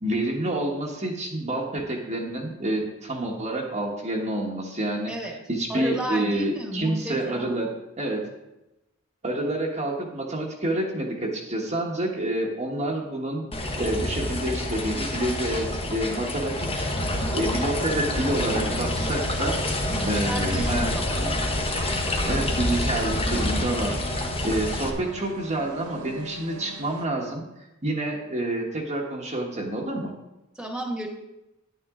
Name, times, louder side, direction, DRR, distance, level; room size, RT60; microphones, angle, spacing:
voice 1, 0.0-8.3 9.2-13.5 13.8-16.9 17.3-19.6 20.0-21.3 22.2-27.4 27.8-30.1, right 1 dB, 30° right, -2 dB, 1.2 m, -28 dB
voice 2, 5.7-7.5 19.9-21.3 30.5-31.1, right 1 dB, 5° right, 1 dB, 1.5 m, -32 dB
sound 1, 13.5-24.9, left 1 dB, 25° left, 1.2 m, -27 dB
sound 2, 16.8-27.1, right 3 dB, 70° right, 0.7 m, -41 dB
10.5 x 9.0 x 3.7 m, 0.95 s
head